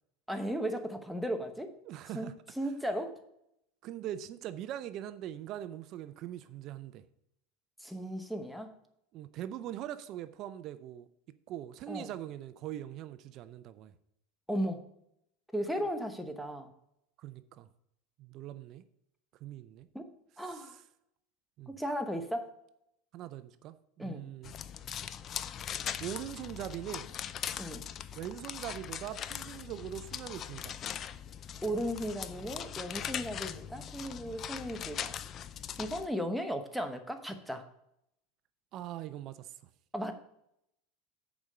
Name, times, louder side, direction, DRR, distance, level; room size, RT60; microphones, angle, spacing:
voice 1, 0.3-1.7 2.1-2.3 2.6-3.2 7.8-8.7 11.9-12.1 14.5-14.8 15.5-16.7 19.9-20.1 20.4-20.7 21.7-22.5 24.0-24.3 27.6-27.8 31.6-35.1 35.8-37.6 39.9-40.1, equal, ahead, 1.0 m, -35 dB
voice 2, 1.8-2.3 3.8-7.0 9.1-11.1 11.5-13.9 17.2-17.7 18.2-18.8 19.4-19.9 20.4-20.8 21.6-21.7 23.1-24.5 26.0-27.1 28.1-30.8 38.7-39.5, right 12 dB, 45° right, 0.5 m, -42 dB
sound 1, 24.4-36.1, left 9 dB, 35° left, 0.4 m, -40 dB
7.0 x 5.0 x 6.6 m
supercardioid pair, 135°, 0 cm